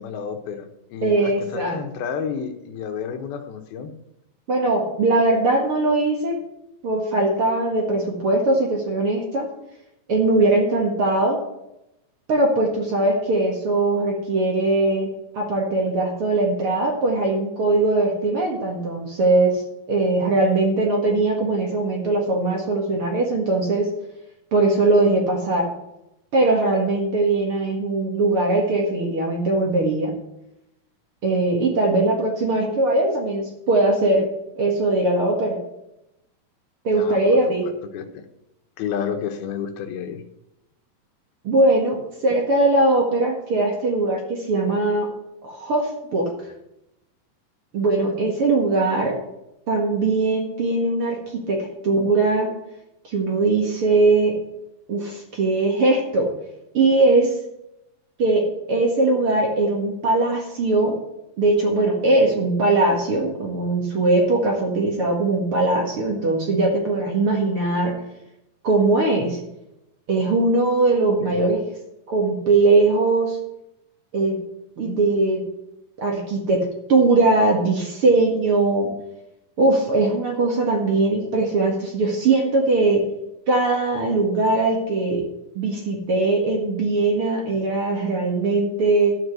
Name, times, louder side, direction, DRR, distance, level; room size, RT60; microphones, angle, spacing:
voice 1, 0.0-3.9 36.9-37.5 37.9-38.3 38.8-40.2 71.2-71.5, left 7 dB, 85° left, 6 dB, 3.0 m, -31 dB
voice 2, 1.0-1.8 4.5-6.4 6.8-9.5 10.1-11.4 12.3-19.6 19.9-23.9 24.5-25.7 26.3-30.1 31.2-34.3 34.6-35.6 36.8-37.7 41.4-45.1 45.4-46.3 47.7-49.1 49.7-52.5 53.0-54.4 54.9-56.3 56.7-57.3 58.2-61.0 61.4-67.9 68.6-69.4 70.1-71.6 72.1-73.4 74.1-74.4 74.8-75.4 76.0-78.9 79.6-83.1 83.5-85.2 85.6-89.1, right 2 dB, 45° right, 0 dB, 2.2 m, -20 dB
13.0 x 5.4 x 7.9 m, 0.87 s
omnidirectional pair, 4.2 m